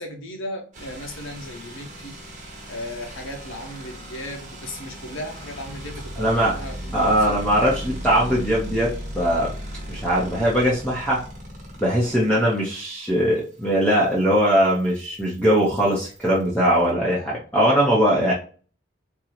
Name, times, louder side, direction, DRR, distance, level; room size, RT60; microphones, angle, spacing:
voice 1, 0.0-2.2 2.7-7.4, left 1 dB, 85° left, 0.8 m, -36 dB
sound 1, 0.7-16.9, equal, 40° right, 0.9 m, -37 dB
voice 2, 6.2-6.5 6.9-9.5 9.9-11.2 11.8-18.3, equal, 5° left, 0.6 m, -20 dB
3.6 x 2.0 x 2.8 m
head